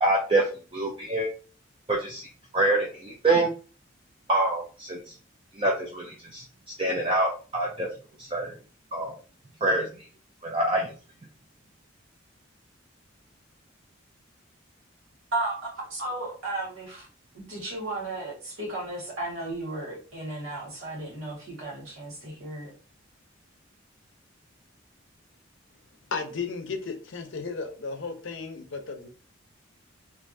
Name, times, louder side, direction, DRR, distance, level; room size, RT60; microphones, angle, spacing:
voice 1, 0.0-1.3 1.9-2.3 2.5-3.5 4.3-5.2 5.5-7.9 8.2-8.5 8.9-9.1 9.6-10.1 10.4-10.9, right 2 dB, 25° right, 0.4 m, -26 dB
voice 2, 15.3-17.1 17.3-22.7, right 2 dB, 90° right, 1.6 m, -34 dB
voice 3, 26.1-29.1, left 4 dB, 70° left, 0.6 m, -34 dB
3.3 x 2.5 x 2.6 m
head